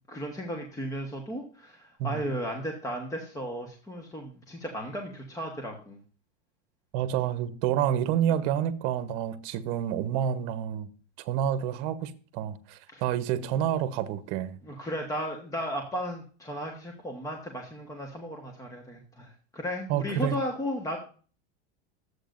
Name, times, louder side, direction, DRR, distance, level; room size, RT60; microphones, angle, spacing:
voice 1, 0.1-6.0 12.9-13.0 14.6-21.0, equal, 10° left, 1.3 m, -35 dB
voice 2, 6.9-10.9 11.2-14.6 19.9-20.4, right 10 dB, 50° right, 1.1 m, -29 dB
12.5 x 8.0 x 2.6 m
supercardioid pair, 140°, 34 cm